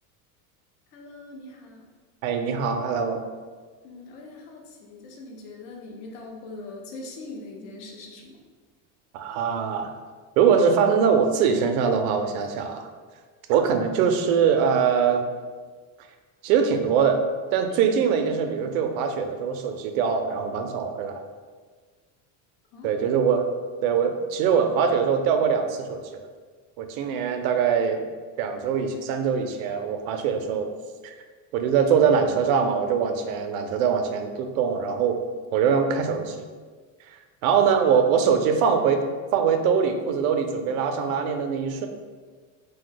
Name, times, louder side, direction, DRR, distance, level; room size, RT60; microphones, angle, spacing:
voice 1, 0.9-1.9 3.8-8.4 22.7-23.0, left 2 dB, 45° left, 0 dB, 0.5 m, -42 dB
voice 2, 2.2-3.2 9.1-9.9 10.4-12.9 13.5-15.2 16.4-17.2 17.5-21.2 22.8-23.5 23.8-26.2 26.8-28.0 28.4-30.7 31.0-31.1 31.5-35.2 35.5-36.5 37.4-39.0 39.3-41.9, right 6 dB, 85° right, 6 dB, 0.5 m, -22 dB
2.7 x 2.1 x 3.7 m, 1.5 s
cardioid pair, 170°, 40 cm